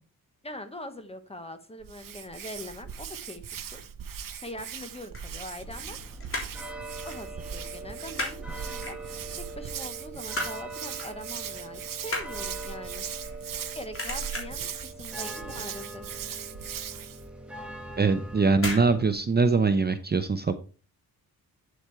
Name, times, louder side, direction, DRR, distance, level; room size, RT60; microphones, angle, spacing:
voice 1, 0.4-3.8 4.4-6.0 7.0-13.0 13.7-16.2, left 1 dB, 15° left, 9 dB, 1.1 m, -42 dB
Hands, 1.8-17.2, right 8 dB, 65° right, 0.9 m, -39 dB
sound 1, 5.1-5.9 6.2-6.7 7.0-7.3 7.5-8.4 8.8-9.4 9.8-10.6 11.0-11.2 11.5-13.6 13.9-14.7 15.1-15.5 15.7-15.8 16.2-16.3 16.7-16.8 17.7-17.9 18.5-18.9 19.2-19.3, left 2 dB, 35° left, 3.3 m, -35 dB
sound 2, 5.6-19.1, right 2 dB, 5° right, 1.6 m, -41 dB
voice 2, 18.0-20.6, right 4 dB, 25° right, 9 dB, 0.7 m, -23 dB
9.0 x 7.9 x 3.2 m, 0.35 s
wide cardioid pair, 150°, 36 cm